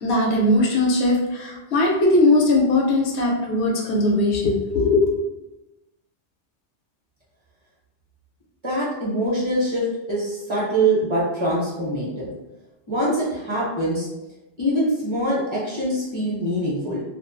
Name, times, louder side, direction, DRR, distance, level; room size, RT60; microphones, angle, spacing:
voice 1, 0.0-5.1, left 2 dB, 70° left, -1 dB, 0.8 m, -19 dB
voice 2, 8.6-9.8 10.1-12.3 12.9-14.1 14.6-17.0, right 1 dB, 30° right, -7 dB, 0.7 m, -24 dB
2.3 x 2.2 x 2.5 m, 0.99 s
omnidirectional pair, 1.2 m